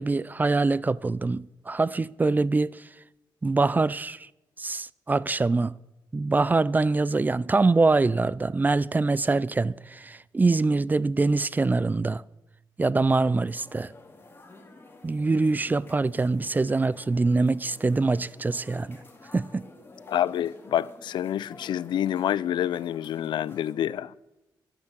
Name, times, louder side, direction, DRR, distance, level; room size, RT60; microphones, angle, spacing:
voice 1, 0.0-2.8 3.4-4.2 4.6-5.7 6.1-12.2 12.8-13.9 15.0-19.0 19.3-19.6, right 3 dB, 25° right, 0.4 m, -24 dB
sound 1, 13.3-23.7, left 3 dB, 30° left, 2.5 m, -50 dB
voice 2, 20.1-24.1, left 10 dB, 80° left, 0.4 m, -27 dB
10.0 x 9.2 x 7.5 m
cardioid pair, 85°, 8 cm